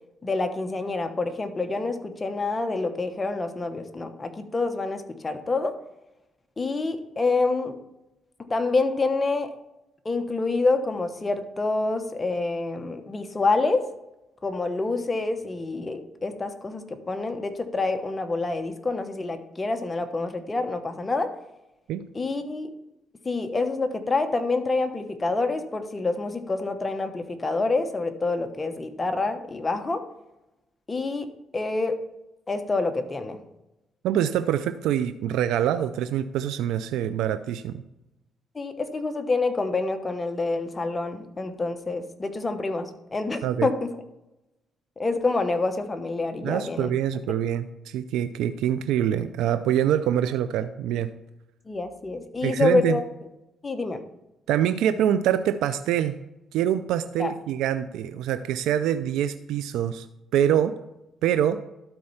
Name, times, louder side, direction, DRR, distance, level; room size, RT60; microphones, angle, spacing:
voice 1, 0.2-5.7 6.6-7.8 8.4-9.5 10.0-13.8 14.4-21.3 22.1-22.7 23.2-30.0 30.9-31.3 31.5-32.0 32.5-33.4 38.5-43.9 45.0-46.9 51.7-53.0 53.6-54.0 57.2-57.3, left 3 dB, 25° left, 7 dB, 1.1 m, -27 dB
voice 2, 34.0-37.8 43.4-43.7 46.4-51.1 52.4-53.0 54.5-56.2 56.5-60.1 60.3-60.7 61.2-61.6, right 10 dB, 90° right, 11 dB, 0.4 m, -25 dB
12.5 x 4.3 x 5.7 m, 0.92 s
cardioid pair, 90°, 0 cm